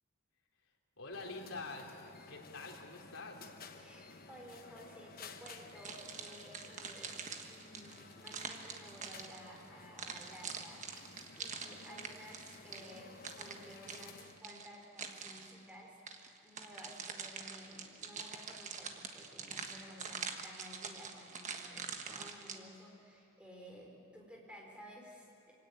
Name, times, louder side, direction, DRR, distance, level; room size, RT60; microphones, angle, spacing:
voice 1, 1.0-3.5, left 3 dB, 85° left, 0 dB, 3.5 m, -46 dB
sound 1, 1.1-14.4, left 4 dB, 45° left, 1.2 m, -55 dB
voice 2, 3.8-7.1 7.4-25.5, equal, 5° right, -1 dB, 4.2 m, -54 dB
sound 2, 5.5-9.6 10.0-15.6 16.1-22.6, right 5 dB, 35° right, 1.4 m, -45 dB
25.0 x 17.0 x 9.4 m, 2.9 s
head